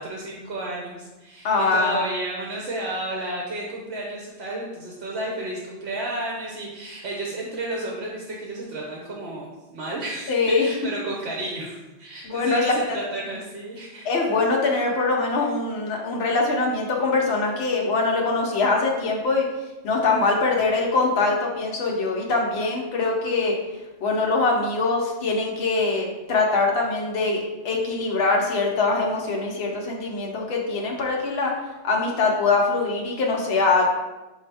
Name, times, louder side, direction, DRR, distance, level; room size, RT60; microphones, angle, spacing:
voice 1, 0.0-14.0, right 2 dB, 70° right, -2 dB, 1.0 m, -32 dB
voice 2, 1.4-2.0 10.3-10.7 12.2-13.0 14.0-19.5 19.8-23.5 24.0-31.5 31.8-33.8, left 3 dB, 65° left, -1 dB, 1.0 m, -23 dB
4.9 x 2.7 x 3.3 m, 1.1 s
omnidirectional pair, 1.2 m